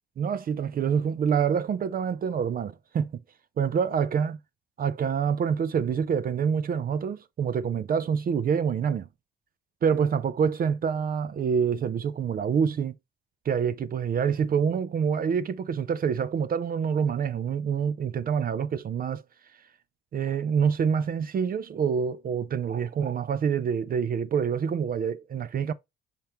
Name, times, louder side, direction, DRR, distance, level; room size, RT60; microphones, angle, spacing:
voice 1, 0.2-3.1 3.6-4.4 4.8-9.1 9.8-12.9 13.5-19.2 20.1-25.7, right 7 dB, 45° right, 0.5 m, -26 dB
5.4 x 4.4 x 4.4 m
cardioid pair, 90°, 20 cm